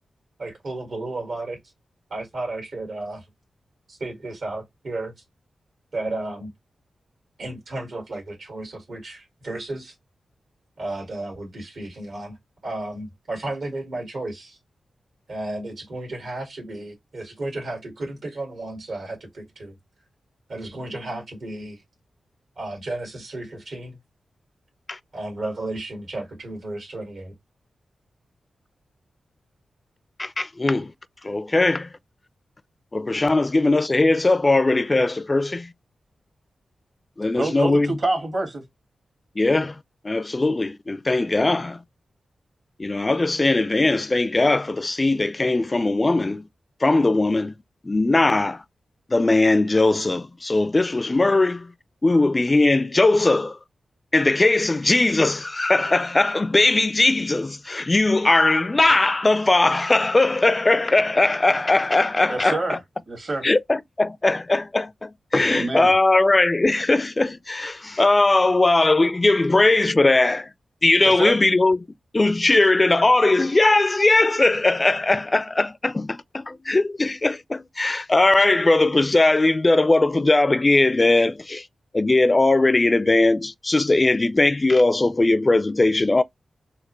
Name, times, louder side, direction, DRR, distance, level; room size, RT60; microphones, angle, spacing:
voice 1, 0.4-1.6 2.1-3.2 3.9-5.1 5.9-6.5 7.4-9.9 10.8-12.3 12.6-14.6 15.3-19.7 20.5-21.8 22.6-23.9 25.1-27.3, right 2 dB, 70° right, 1.9 m, -33 dB
voice 2, 30.2-30.9 31.2-31.9 32.9-35.7 37.2-38.0 39.4-39.8 40.0-41.8 42.8-46.5 46.8-47.6 47.8-48.6 49.1-51.7 52.0-53.6 54.1-62.8 63.4-70.5 70.8-71.9 72.1-81.7 81.9-86.2, left 2 dB, 30° left, 0.4 m, -19 dB
voice 3, 37.4-38.6 62.3-62.8 63.1-63.4 65.4-65.9 71.0-71.4, right 2 dB, 55° right, 1.7 m, -26 dB
4.2 x 2.1 x 3.0 m
cardioid pair, 45°, 0 cm